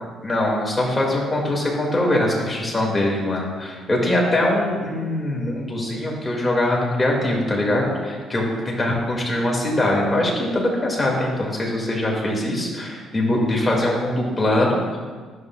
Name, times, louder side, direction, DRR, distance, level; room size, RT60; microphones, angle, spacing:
voice 1, 0.2-15.0, left 1 dB, 20° left, -2 dB, 2.2 m, -22 dB
11.0 x 7.3 x 2.4 m, 1.5 s
supercardioid pair, 75°, 0 cm